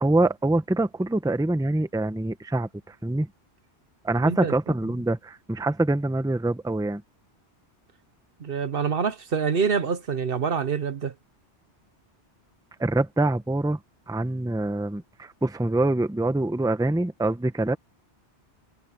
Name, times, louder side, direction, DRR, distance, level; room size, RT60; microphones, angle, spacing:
voice 1, 0.0-3.3 4.0-7.0 12.8-13.8 14.1-17.8, right 2 dB, 5° right, 0.8 m, -25 dB
voice 2, 4.2-4.5 8.4-11.1, right 6 dB, 55° right, 1.0 m, -26 dB
omnidirectional pair, 1.2 m